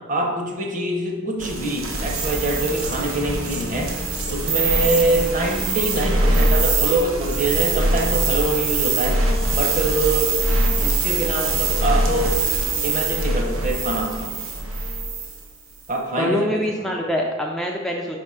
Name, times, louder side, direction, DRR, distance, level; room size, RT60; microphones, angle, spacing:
voice 1, 0.1-4.0 4.3-9.2 9.5-10.3 10.8-12.4 12.8-14.3 15.9-17.0, right 2 dB, 40° right, 2 dB, 0.9 m, -24 dB
sound 1, 1.4-15.4, right 2 dB, 85° right, 1.0 m, -23 dB
voice 2, 16.2-18.2, left 1 dB, ahead, -1 dB, 0.4 m, -24 dB
6.0 x 4.3 x 4.8 m, 1.4 s
head